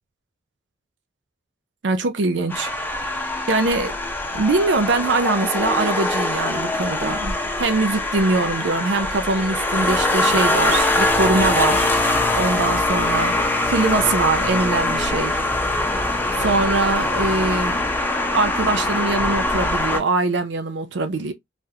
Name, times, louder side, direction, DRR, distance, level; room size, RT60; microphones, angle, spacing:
voice 1, 1.8-2.7 3.2-4.0 4.3-11.9 12.3-13.4 13.6-15.4 16.3-17.8 18.3-21.3, right 3 dB, 75° right, 0.5 m, -22 dB
sound 1, 2.5-20.0, left 2 dB, 10° left, 0.7 m, -22 dB
3.5 x 2.4 x 2.7 m
head